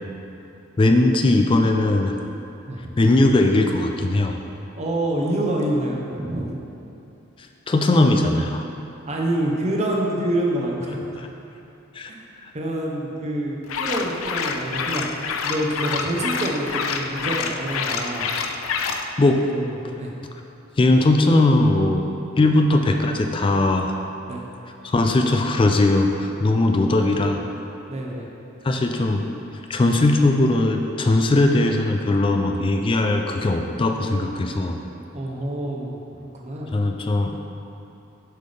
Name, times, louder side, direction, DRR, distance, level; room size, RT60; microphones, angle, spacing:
voice 1, 0.8-2.2 3.0-4.4 7.7-8.7 11.9-12.1 12.4-12.5 19.2-19.4 20.8-24.0 24.8-27.4 28.6-29.3 29.7-34.8 36.7-37.4, left 2 dB, 25° left, 4 dB, 0.3 m, -19 dB
voice 2, 4.8-6.5 9.1-11.0 12.1-12.2 12.5-15.1 15.4-18.3 19.5-20.1 24.3-24.4 27.9-28.3 35.1-36.0 36.4-36.7, right 1 dB, 35° right, -1 dB, 0.7 m, -26 dB
sound 1, 13.7-19.0, left 5 dB, 85° left, 0.4 m, -27 dB
7.7 x 5.6 x 3.3 m, 2.8 s
head